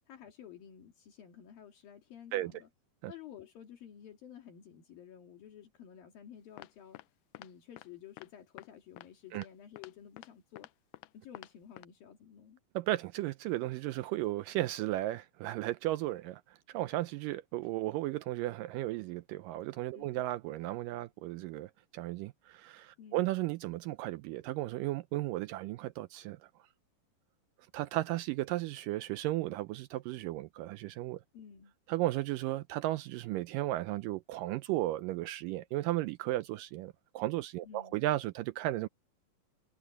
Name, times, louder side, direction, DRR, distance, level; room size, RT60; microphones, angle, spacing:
voice 1, 0.0-2.7 3.1-7.0 7.4-10.7 11.1-12.6 19.9-20.2 23.0-23.3 31.3-31.7 37.6-38.0, left 9 dB, 75° left, 4.0 m, -52 dB
sound 1, 6.6-7.0 7.3-7.5 7.8-7.9 8.2-8.3 8.6-8.7 9.0-9.1 9.3-9.5 9.8-9.9 10.2-10.3 10.6-11.1 11.3-11.5 11.8-11.9, left 18 dB, 90° left, 1.8 m, -49 dB
voice 2, 12.8-26.4 27.7-31.2 31.9-38.9, right 16 dB, 80° right, 2.0 m, -35 dB
omnidirectional pair, 4.2 m